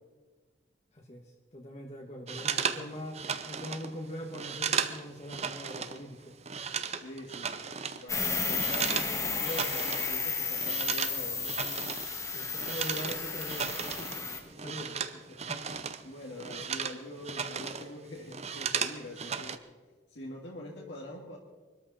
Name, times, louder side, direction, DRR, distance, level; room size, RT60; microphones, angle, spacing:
voice 1, 0.9-6.4 11.6-12.0 12.3-15.0 15.5-15.8, equal, 35° left, 0 dB, 1.5 m, -43 dB
sound 1, 2.3-6.0 6.3-9.1 9.4-10.2 10.4-16.0 16.3-17.9 18.2-19.6, right 6 dB, 35° right, 0.7 m, -35 dB
voice 2, 6.9-11.6 14.6-14.7 15.3-15.5 15.8-19.6 20.1-21.4, left 1 dB, 75° left, -3 dB, 2.1 m, -44 dB
sound 2, 8.1-14.4, left 4 dB, 15° left, 1.6 m, -33 dB
24.0 x 13.0 x 4.2 m, 1.4 s
head